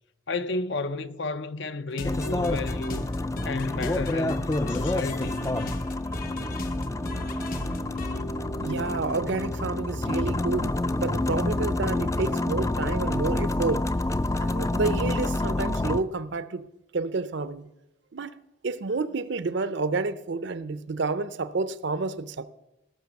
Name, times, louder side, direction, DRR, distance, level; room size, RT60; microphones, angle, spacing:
voice 1, 0.3-3.1 3.4-5.8, left 3 dB, 60° left, 0.6 m, -32 dB
sound 1, 1.9-8.2, left 1 dB, 45° left, 1.1 m, -37 dB
sound 2, 2.0-16.0, left 2 dB, 15° left, 0.3 m, -28 dB
Piano, 6.2-13.7, right 1 dB, 75° left, 2.3 m, -43 dB
voice 2, 8.6-13.9 14.4-16.6 16.9-17.7 18.1-18.4 18.6-22.5, right 3 dB, 60° right, 0.6 m, -29 dB
17.5 x 6.0 x 7.0 m
head